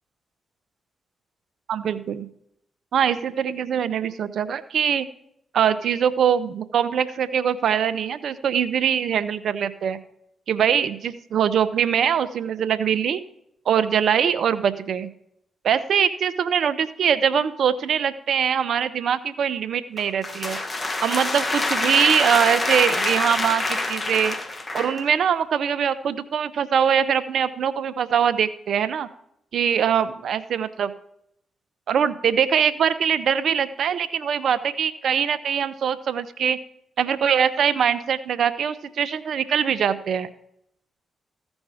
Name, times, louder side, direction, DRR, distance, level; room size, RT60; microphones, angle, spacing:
voice 1, 1.7-2.3 2.9-5.1 5.5-10.0 10.5-13.2 13.7-15.1 15.6-20.6 21.0-24.4 24.7-29.1 29.5-30.9 31.9-36.6 37.0-40.3, right 8 dB, 70° right, 14 dB, 0.6 m, -22 dB
sound 1, 20.0-25.1, left 2 dB, 35° left, 1.2 m, -26 dB
14.5 x 5.3 x 4.8 m, 0.75 s
hypercardioid pair, 45°, 0 cm